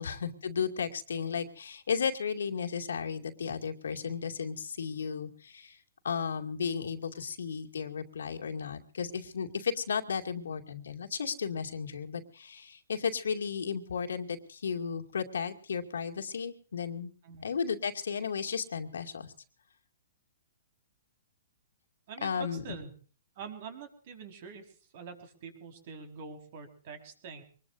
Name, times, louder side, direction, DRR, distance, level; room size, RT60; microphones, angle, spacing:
voice 1, 0.0-5.8 6.0-17.1 17.4-19.3 22.2-22.7, left 6 dB, 85° left, 5 dB, 2.4 m, -34 dB
voice 2, 22.1-22.9 23.3-27.4, right 5 dB, 50° right, 6 dB, 4.6 m, -45 dB
25.0 x 21.0 x 2.6 m, 0.40 s
hypercardioid pair, 145°, 0 cm